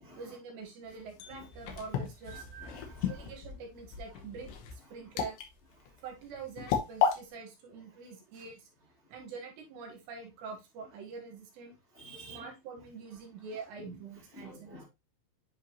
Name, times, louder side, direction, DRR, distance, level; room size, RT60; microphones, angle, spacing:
voice 1, 0.1-2.5 3.1-5.4 6.0-8.7 9.1-11.7 12.3-14.8, right 5 dB, 70° right, 1 dB, 3.4 m, -45 dB
sound 1, 0.9-7.2, left 8 dB, 70° left, 3.0 m, -34 dB
voice 2, 2.3-3.2 11.9-12.4 13.8-14.0 14.3-14.8, right 2 dB, 30° left, -5 dB, 1.3 m, -49 dB
10.5 x 3.6 x 2.9 m, 0.23 s
omnidirectional pair, 5.6 m